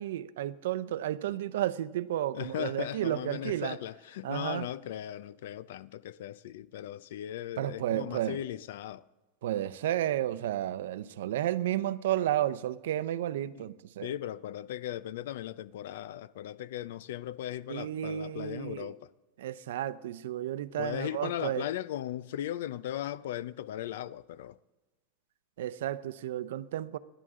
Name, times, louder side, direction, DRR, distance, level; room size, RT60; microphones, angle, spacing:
voice 1, 0.0-3.8 4.2-4.7 7.6-8.4 9.4-14.1 17.7-18.9 19.4-21.7 25.6-27.0, right 12 dB, 85° right, 0.7 m, -32 dB
voice 2, 2.3-9.0 13.6-13.7 14.0-19.1 20.8-24.6, left 12 dB, 75° left, 0.5 m, -37 dB
28.0 x 11.0 x 3.8 m
supercardioid pair, 170°, 0 cm